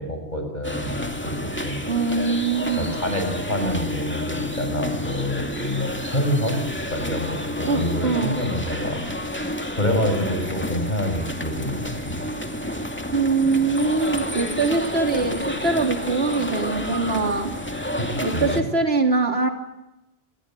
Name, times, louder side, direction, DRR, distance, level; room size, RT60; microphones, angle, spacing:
voice 1, 0.0-1.9 2.8-6.6 6.9-9.0 9.4-12.2 18.0-18.7, left 1 dB, 45° left, 5 dB, 7.2 m, -27 dB
sound 1, 0.6-18.6, left 1 dB, 10° left, 2.4 m, -30 dB
voice 2, 1.9-2.9 7.7-8.4 13.1-17.5 18.2-19.5, right 4 dB, 80° right, 4 dB, 3.6 m, -23 dB
28.0 x 20.0 x 9.0 m, 0.92 s
omnidirectional pair, 1.1 m